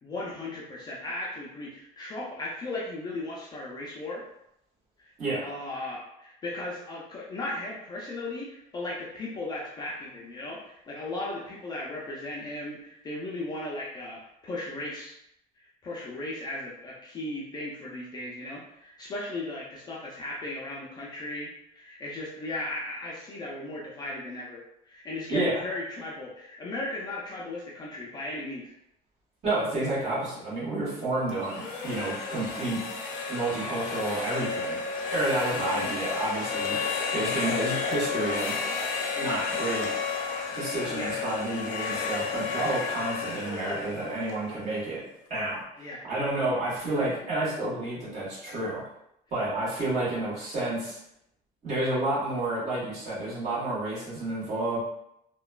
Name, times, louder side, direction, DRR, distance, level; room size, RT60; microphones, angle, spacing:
voice 1, 0.0-4.2 5.0-5.1 5.4-15.2 15.6-28.6 35.5-35.9 40.9-41.2 43.0-43.1 45.8-46.1, left 2 dB, 25° left, -5 dB, 0.4 m, -36 dB
voice 2, 5.2-5.5 25.3-25.6 29.4-32.8 33.3-34.8 35.1-38.6 39.1-39.9 40.5-45.0 45.3-48.8 49.3-51.0 51.6-54.8, right 2 dB, 40° right, -8 dB, 1.4 m, -30 dB
sound 1, 31.3-45.1, left 5 dB, 80° left, 0.6 m, -32 dB
2.9 x 2.2 x 2.3 m, 0.78 s
cardioid pair, 155°, 17 cm